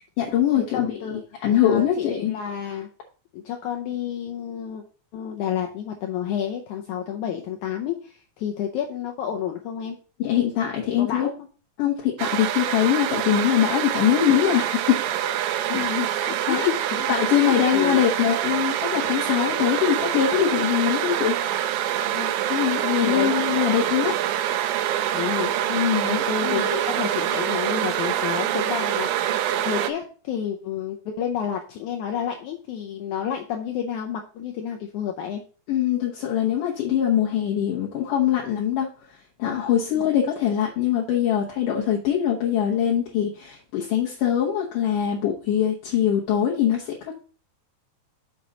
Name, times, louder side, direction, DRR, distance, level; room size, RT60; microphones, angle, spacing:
voice 1, 0.2-2.4 10.2-11.3 11.8-15.0 16.2-16.6 17.1-21.4 22.5-24.2 25.7-26.7 35.7-38.9 39.4-47.1, left 10 dB, 70° left, -3 dB, 2.4 m, -23 dB
voice 2, 0.7-1.2 1.6-2.9 3.3-4.8 5.1-10.0 11.0-11.3 15.7-18.0 22.1-22.3 23.0-23.3 25.1-25.5 26.0-35.4 39.9-40.0, left 9 dB, 85° left, 2 dB, 1.7 m, -30 dB
sound 1, 12.2-29.9, right 11 dB, 80° right, 2.3 m, -25 dB
6.9 x 6.4 x 3.9 m, 0.39 s
omnidirectional pair, 4.3 m